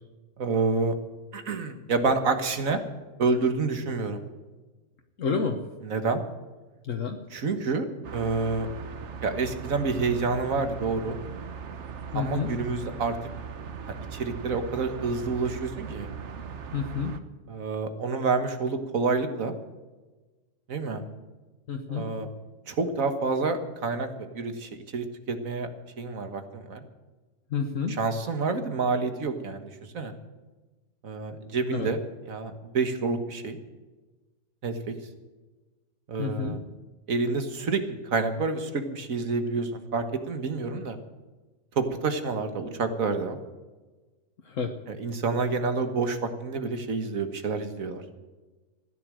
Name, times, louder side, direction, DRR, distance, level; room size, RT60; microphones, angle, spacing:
voice 1, 0.4-0.9 1.3-2.8 3.2-4.2 5.8-6.2 7.3-7.9 8.1-8.7 9.2-11.2 12.1-13.2 13.9-16.1 17.5-19.5 20.7-21.0 21.9-22.3 22.7-25.7 26.0-26.8 27.9-30.1 31.0-32.0 32.3-33.6 34.6-35.0 36.1-36.6 37.1-41.0 41.8-43.4 44.9-48.0, right 4 dB, 80° right, 8 dB, 1.9 m, -28 dB
voice 2, 5.2-5.6 6.8-7.2 12.1-12.5 16.7-17.2 21.7-22.0 27.5-27.9 31.7-31.9 36.2-36.5 44.5-44.7, left 5 dB, 70° left, 3 dB, 1.5 m, -29 dB
sound 1, 8.0-17.2, right 6 dB, 60° right, 1.3 m, -39 dB
15.5 x 10.5 x 7.6 m, 1.2 s
omnidirectional pair, 1.4 m